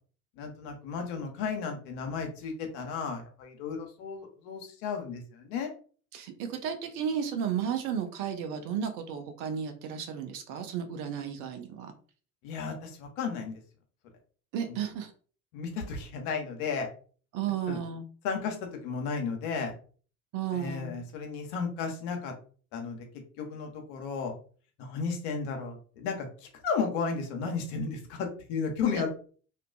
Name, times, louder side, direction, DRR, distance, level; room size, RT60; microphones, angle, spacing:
voice 1, 0.4-5.7 12.4-13.6 14.7-14.8 15.5-16.9 17.7-17.8 18.2-19.7 20.5-22.3 22.7-23.1 23.4-24.3 24.8-29.1, left 5 dB, 60° left, 3 dB, 0.8 m, -34 dB
voice 2, 6.1-11.9 14.5-15.1 17.3-18.0 20.3-20.9 28.9-29.1, right 8 dB, 45° right, 6 dB, 0.5 m, -33 dB
2.4 x 2.2 x 2.3 m, 0.41 s
figure-of-eight pair, 65°, 44 cm